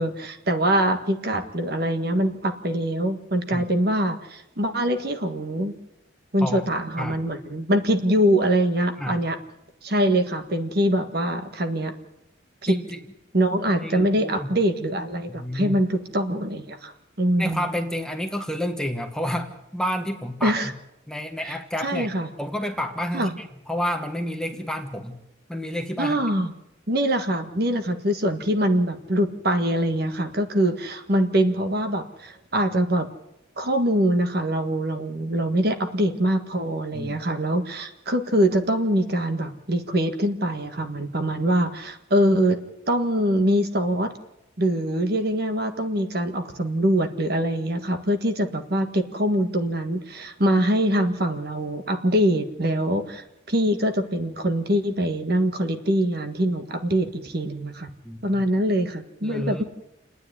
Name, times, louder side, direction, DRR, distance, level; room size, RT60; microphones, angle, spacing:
voice 1, 0.0-5.7 6.3-9.4 9.8-11.9 12.6-12.8 13.3-16.9 17.2-17.7 20.4-20.7 21.4-21.6 21.8-22.3 23.1-23.3 26.0-26.5 26.9-33.1 33.6-42.6 42.9-44.1 44.6-57.9 58.2-59.6, right 1 dB, 50° right, 7 dB, 1.6 m, -23 dB
voice 2, 12.7-13.0 13.8-14.5 15.3-15.8 17.4-20.7 21.1-22.1 22.4-25.2 25.5-26.2 36.9-37.2 58.0-58.3 59.2-59.6, equal, 5° left, 4 dB, 1.2 m, -30 dB
28.5 x 9.8 x 9.9 m, 0.88 s
head